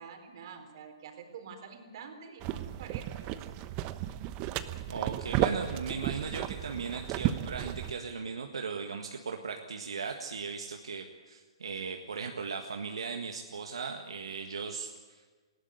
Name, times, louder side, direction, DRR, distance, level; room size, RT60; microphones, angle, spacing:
voice 1, 0.0-3.4, right 6 dB, 55° right, 5 dB, 4.0 m, -47 dB
sound 1, 2.4-7.9, right 13 dB, 35° right, 1.1 m, -33 dB
voice 2, 4.9-15.3, right 5 dB, 80° right, 3 dB, 1.7 m, -38 dB
20.0 x 16.5 x 9.7 m, 1.4 s
hypercardioid pair, 130°, 3 cm